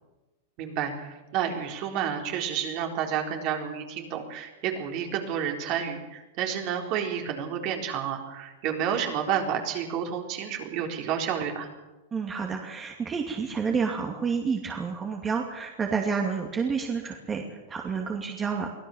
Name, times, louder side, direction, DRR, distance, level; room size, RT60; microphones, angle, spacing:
voice 1, 0.6-11.7, right 8 dB, 50° right, 3 dB, 4.1 m, -30 dB
voice 2, 12.1-18.9, right 5 dB, 20° right, 2 dB, 2.5 m, -29 dB
24.0 x 16.0 x 7.3 m, 1.1 s
hypercardioid pair, 115°, 0 cm